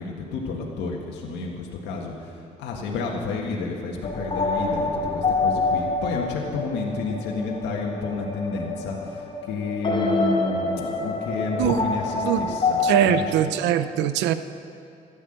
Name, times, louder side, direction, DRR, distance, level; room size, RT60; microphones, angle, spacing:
voice 1, 0.0-12.8 13.0-13.2, left 4 dB, 85° left, -1 dB, 1.7 m, -30 dB
sound 1, 4.0-13.3, left 3 dB, 30° left, 3.3 m, -27 dB
voice 2, 12.8-14.3, right 11 dB, 90° right, 11 dB, 0.7 m, -21 dB
13.5 x 10.5 x 7.8 m, 2.5 s
supercardioid pair, 70°, 18 cm